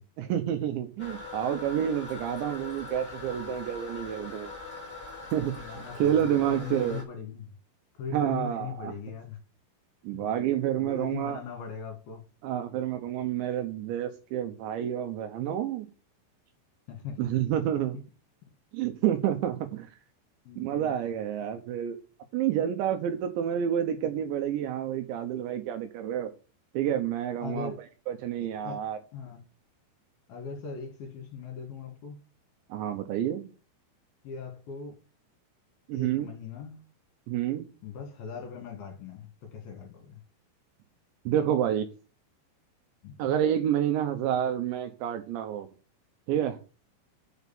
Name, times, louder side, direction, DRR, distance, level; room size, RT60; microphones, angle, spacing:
voice 1, 0.2-4.5 5.3-7.0 8.1-8.9 10.0-11.4 12.4-15.9 17.2-18.0 18.7-19.9 20.6-22.0 22.3-26.3 26.7-27.7 28.1-29.0 32.7-33.5 35.9-36.3 37.3-37.7 41.3-41.9 43.2-45.7 46.3-46.6, right 10 dB, 75° right, 2.9 m, -29 dB
Toilet flush, 1.0-7.0, left 3 dB, 20° left, 2.3 m, -41 dB
voice 2, 5.4-7.5 7.9-9.4 10.1-10.3 10.8-12.2 16.9-17.4 17.9-18.0 20.4-21.0 27.4-27.9 28.4-28.8 29.1-29.4 30.3-32.2 34.2-35.0 35.9-36.9 37.8-40.2 43.0-43.3, left 6 dB, 60° left, 3.2 m, -40 dB
7.2 x 6.4 x 7.1 m
omnidirectional pair, 5.8 m